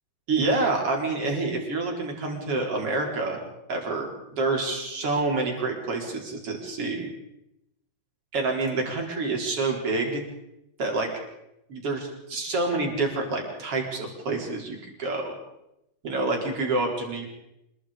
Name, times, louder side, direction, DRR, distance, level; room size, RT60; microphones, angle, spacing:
voice 1, 0.3-3.4 3.7-7.1 8.3-10.2 10.8-11.1 11.7-15.3 16.0-17.3, right 3 dB, 30° right, 1 dB, 4.8 m, -27 dB
26.5 x 22.0 x 5.2 m, 0.87 s
omnidirectional pair, 5.2 m